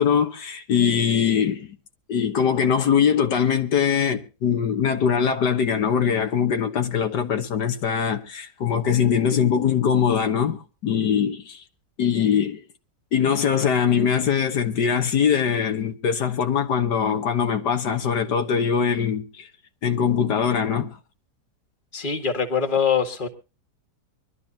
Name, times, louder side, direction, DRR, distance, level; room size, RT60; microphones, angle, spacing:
voice 1, 0.0-1.8 2.1-11.6 12.0-12.6 13.1-19.5 19.8-21.0, left 7 dB, 75° left, 1.9 m, -22 dB
voice 2, 21.9-23.3, left 6 dB, 30° left, 2.0 m, -23 dB
24.5 x 12.5 x 2.8 m
omnidirectional pair, 1.8 m